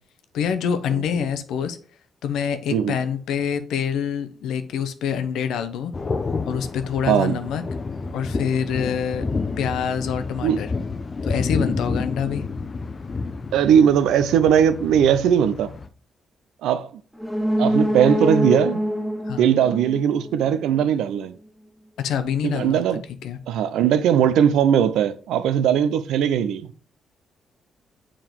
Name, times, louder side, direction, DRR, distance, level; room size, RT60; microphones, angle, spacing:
voice 1, 0.3-1.8 2.2-5.9 6.5-7.6 8.1-9.3 9.6-10.7 11.2-12.4 19.3-19.5 22.0-23.4, left 8 dB, 80° left, 0.7 m, -26 dB
sound 1, 5.9-15.9, left 4 dB, 40° left, 0.7 m, -30 dB
voice 2, 7.1-7.4 10.4-10.6 13.5-15.7 16.6-16.9 17.6-18.8 19.4-21.4 22.4-23.0 23.5-26.7, right 9 dB, 85° right, 0.5 m, -19 dB
sound 2, 17.1-20.8 21.2-21.3, equal, ahead, 1.6 m, -25 dB
6.9 x 3.7 x 4.6 m
supercardioid pair, 55°, 0 cm